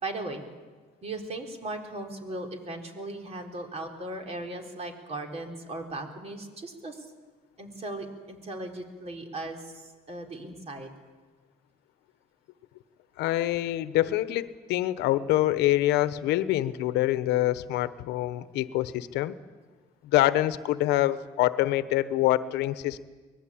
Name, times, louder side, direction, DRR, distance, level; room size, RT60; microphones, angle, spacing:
voice 1, 0.0-0.4 1.0-7.1 7.6-10.9, right 2 dB, 40° right, 3 dB, 4.1 m, -37 dB
voice 2, 13.2-19.4 20.0-23.0, left 15 dB, 90° left, 14 dB, 1.1 m, -25 dB
24.0 x 20.0 x 8.7 m, 1.4 s
cardioid pair, 110°, 17 cm